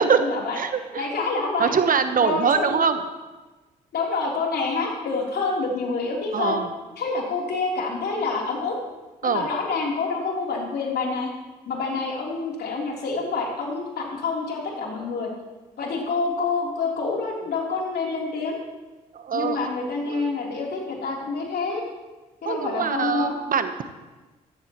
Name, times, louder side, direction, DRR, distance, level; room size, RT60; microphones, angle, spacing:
voice 1, 0.0-0.6 1.0-1.7 2.2-2.9 3.9-6.6 7.0-8.8 9.2-11.3 11.7-15.3 15.8-18.6 19.3-21.8 22.4-23.3, left 4 dB, 65° left, -2 dB, 3.6 m, -27 dB
voice 2, 0.5-1.1 1.6-3.0 6.3-6.7 9.2-9.5 19.1-19.7 20.1-20.3 22.4-23.8, right 6 dB, 50° right, 9 dB, 1.1 m, -23 dB
15.0 x 14.0 x 3.1 m, 1.2 s
hypercardioid pair, 50°, 18 cm